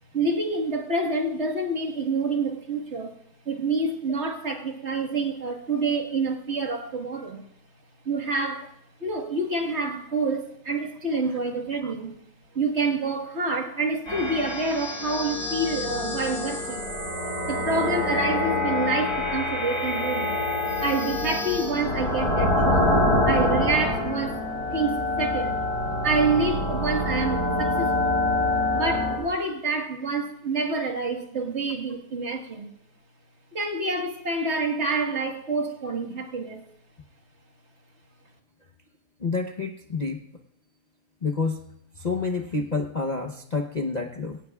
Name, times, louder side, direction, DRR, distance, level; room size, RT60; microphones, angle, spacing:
voice 1, 0.1-3.1 3.5-7.5 8.1-8.7 9.0-12.2 12.5-16.9 17.5-20.4 20.8-22.9 23.3-24.4 24.7-25.6 26.0-28.2 28.7-32.7 33.5-36.7, right 3 dB, 45° right, 2 dB, 1.8 m, -27 dB
sound 1, 14.1-29.2, left 1 dB, 75° left, 6.3 m, -26 dB
voice 2, 39.2-40.2 41.2-41.6 42.0-44.4, left 4 dB, 35° left, 1 dB, 0.8 m, -28 dB
22.0 x 17.5 x 2.4 m, 0.73 s
omnidirectional pair, 1.7 m